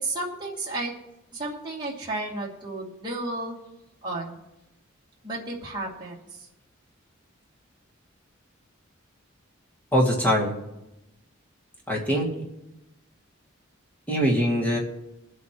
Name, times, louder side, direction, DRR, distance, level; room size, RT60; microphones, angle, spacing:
voice 1, 0.0-0.9 1.3-3.6 4.0-4.4 5.2-6.2, right 2 dB, 20° right, -5 dB, 2.5 m, -32 dB
voice 2, 9.9-10.5 11.9-12.3 14.1-14.8, equal, 10° left, -3 dB, 2.4 m, -22 dB
21.5 x 8.2 x 3.1 m, 0.91 s
head